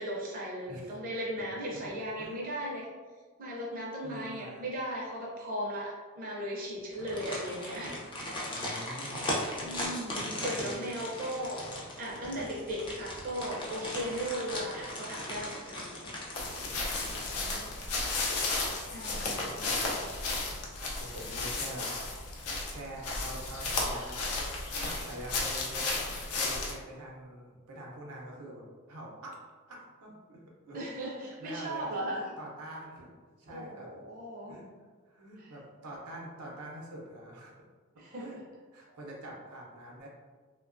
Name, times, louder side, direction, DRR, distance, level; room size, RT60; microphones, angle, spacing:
voice 1, 0.0-2.9 3.4-7.9 9.6-11.6 12.0-15.9 18.8-19.5 30.7-32.3 33.5-34.5 35.4-35.5 38.0-38.4, equal, 40° right, -4 dB, 0.5 m, -37 dB
voice 2, 1.4-2.4 4.0-4.6 8.5-9.2 9.6-9.7 10.1-10.8 17.2-17.9 18.6-20.1 20.9-21.9 22.2-22.3 22.7-24.2 24.7-29.4 29.7-30.9 31.2-33.1 33.4-33.9 34.5-34.7 35.1-37.5 38.1-38.4 38.7-40.1, right 1 dB, 85° right, -2 dB, 0.6 m, -45 dB
sound 1, 6.9-17.9 18.2-18.3 18.7-19.4 19.8-19.9, left 1 dB, 20° left, 0.4 m, -38 dB
sound 2, 16.3-26.7, left 3 dB, 80° left, 0.6 m, -34 dB
2.8 x 2.2 x 2.4 m, 1.5 s
head